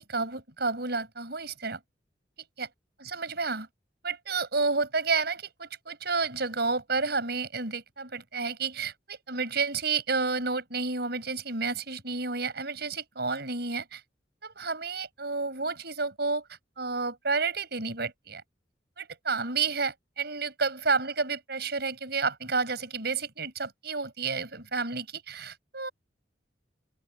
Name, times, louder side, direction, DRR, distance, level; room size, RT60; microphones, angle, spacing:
voice 1, 0.0-1.8 2.6-2.7 3.0-3.7 4.0-14.0 14.4-18.4 19.0-25.9, right 4 dB, 65° right, 6.8 m, -30 dB
open air
head